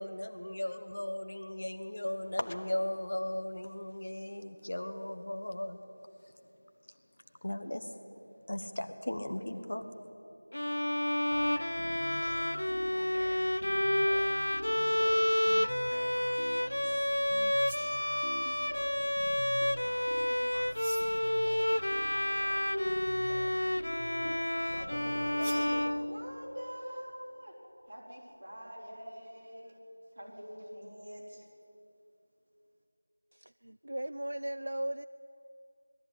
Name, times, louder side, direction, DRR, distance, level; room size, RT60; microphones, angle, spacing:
voice 1, 0.0-5.8 7.4-7.9 8.5-9.9, left 1 dB, 40° left, 7 dB, 1.1 m, -36 dB
Bowed string instrument, 10.5-26.6, left 1 dB, 65° left, 0.4 m, -30 dB
sound 1, 11.3-26.1, right 1 dB, 80° right, 1.5 m, -46 dB
sound 2, 17.5-18.5 20.7-21.4 25.4-25.8, right 2 dB, 5° right, 0.7 m, -46 dB
voice 2, 24.7-27.5 27.9-29.8 30.2-31.5, equal, 35° right, -6 dB, 5.4 m, -45 dB
voice 3, 33.3-35.1, right 1 dB, 60° right, 14 dB, 0.4 m, -37 dB
20.5 x 13.5 x 9.7 m, 2.8 s
figure-of-eight pair, 180°, 0 cm